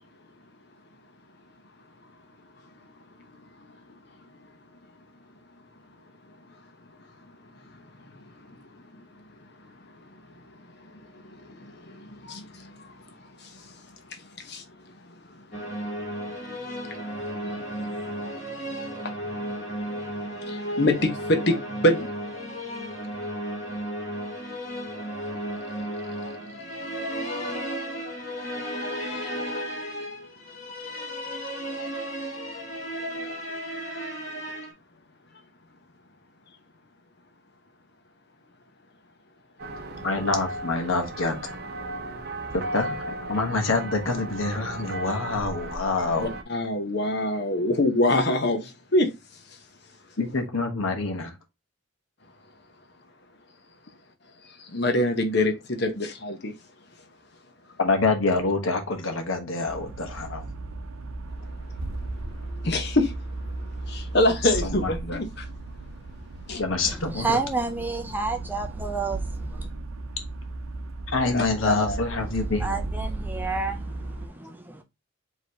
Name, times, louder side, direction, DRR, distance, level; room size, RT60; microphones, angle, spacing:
voice 1, 10.9-12.9 13.4-13.7 14.4-14.6 16.8-17.0 17.3-18.8 19.0-19.1 19.5-22.1 46.2-49.1 54.7-56.5 62.6-63.1 63.8-65.4 66.5-66.6 71.3-72.0, left 1 dB, 50° left, 1.0 m, -26 dB
sound 1, 15.5-34.7, equal, 35° left, 1.6 m, -34 dB
sound 2, 39.6-46.4, right 1 dB, 50° right, 0.6 m, -35 dB
voice 2, 39.9-41.6 42.5-46.3 50.2-51.3 57.8-60.5 64.4-65.2 66.6-67.4 71.1-72.8, left 3 dB, 75° left, 1.1 m, -26 dB
sound 3, 59.7-74.3, right 2 dB, 85° right, 0.6 m, -35 dB
voice 3, 67.0-69.7 72.2-74.8, right 3 dB, 10° right, 0.4 m, -30 dB
4.8 x 3.1 x 2.7 m
head